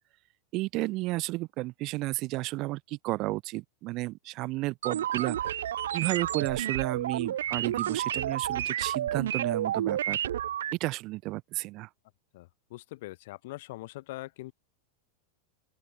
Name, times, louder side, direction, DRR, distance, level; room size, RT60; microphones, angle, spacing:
voice 1, 0.5-5.5 5.9-10.2 10.7-11.9, right 20 dB, 40° right, 3.7 m, -32 dB
sound 1, 4.8-10.7, right 11 dB, 60° right, 5.6 m, -30 dB
voice 2, 12.3-14.5, left 19 dB, 50° left, 7.3 m, -42 dB
open air
figure-of-eight pair, 90°, 0 cm